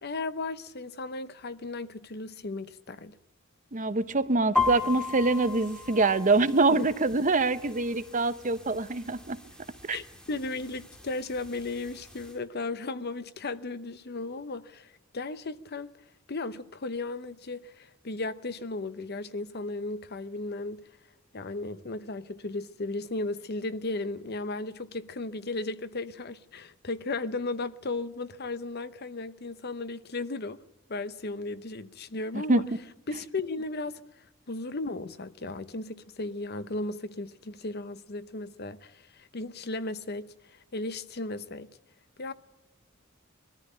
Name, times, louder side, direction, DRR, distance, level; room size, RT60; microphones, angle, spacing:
voice 1, 0.0-3.2 6.7-6.9 9.9-15.9 16.3-20.9 21.3-30.6 30.9-32.6 33.1-34.0 34.5-41.7 42.2-42.3, left 2 dB, 55° left, 0.9 m, -35 dB
voice 2, 3.7-9.4 9.9-10.0 32.5-32.6, right 3 dB, 40° right, 0.8 m, -25 dB
sound 1, 4.6-12.4, left 3 dB, 5° left, 1.9 m, -36 dB
21.5 x 14.0 x 10.0 m
head